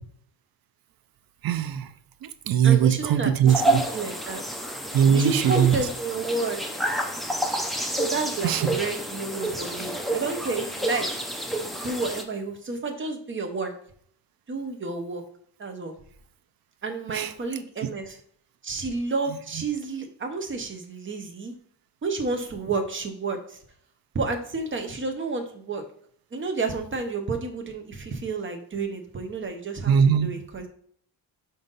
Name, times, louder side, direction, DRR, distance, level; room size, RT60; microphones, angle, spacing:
voice 1, 1.4-1.9 2.2-3.8 4.9-5.7 8.4-8.7 17.1-17.3 29.9-30.3, right 8 dB, 55° right, 12 dB, 0.5 m, -20 dB
voice 2, 2.6-4.4 5.1-6.6 7.9-11.1 11.8-13.7 14.5-15.2 15.6-15.9 16.8-18.2 18.6-21.6 22.0-23.6 24.1-25.8 26.3-29.9 30.2-30.7, right 3 dB, 25° right, 5 dB, 0.9 m, -30 dB
sound 1, 3.5-12.2, right 1 dB, ahead, 0.6 m, -29 dB
5.5 x 5.1 x 4.0 m, 0.62 s
cardioid pair, 160°, 43 cm